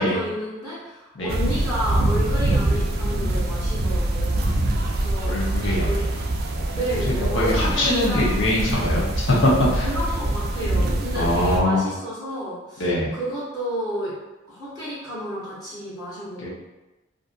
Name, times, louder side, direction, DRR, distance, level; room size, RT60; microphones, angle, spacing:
voice 1, 0.0-4.5 4.9-5.5 5.8-6.0 6.7-8.4 9.8-12.8 13.1-14.1 14.5-16.5, equal, 20° left, -10 dB, 0.8 m, -31 dB
sound 1, 1.3-11.6, right 1 dB, 50° right, 0.3 m, -24 dB
voice 2, 5.2-9.9 11.1-11.8 12.8-13.1 16.4-16.5, left 1 dB, 75° left, -6 dB, 0.9 m, -23 dB
2.6 x 2.6 x 2.5 m, 1.1 s
head